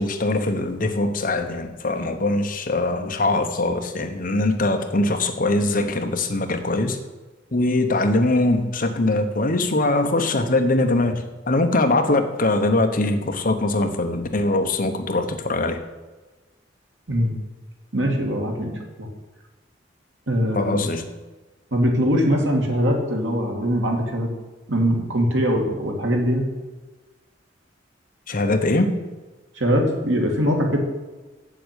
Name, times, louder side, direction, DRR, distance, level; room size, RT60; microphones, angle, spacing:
voice 1, 0.0-7.0 7.5-15.8 20.5-21.0 28.3-29.0, left 2 dB, 50° left, 6 dB, 1.1 m, -22 dB
voice 2, 17.9-18.7 19.0-19.1 20.3-20.8 21.7-24.3 24.7-26.4 29.6-30.8, equal, 85° right, 1 dB, 2.4 m, -22 dB
7.7 x 7.7 x 8.4 m, 1.2 s
head